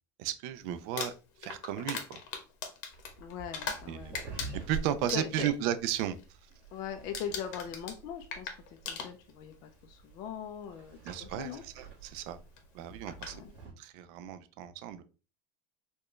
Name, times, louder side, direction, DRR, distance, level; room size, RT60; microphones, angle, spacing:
voice 1, 0.2-1.1 1.4-2.2 3.9-4.2 4.7-6.2 11.0-12.4 12.7-13.4 13.8-15.0, right 11 dB, 50° right, 11 dB, 0.4 m, -34 dB
Crumpling crinkling, 0.8-3.9 4.1-5.6 5.9-6.2 6.5-6.8 7.1-9.5 10.5-10.6 12.6-12.7 13.1-13.4, left 6 dB, 70° left, 0.9 m, -40 dB
sound 1, 2.9-13.7, right 4 dB, 20° right, 1.7 m, -48 dB
voice 2, 3.2-4.2 5.1-5.5 6.7-11.6 13.3-13.5, left 8 dB, 40° left, 6 dB, 0.4 m, -41 dB
4.3 x 2.2 x 3.0 m, 0.34 s
cardioid pair, 180°, 10 cm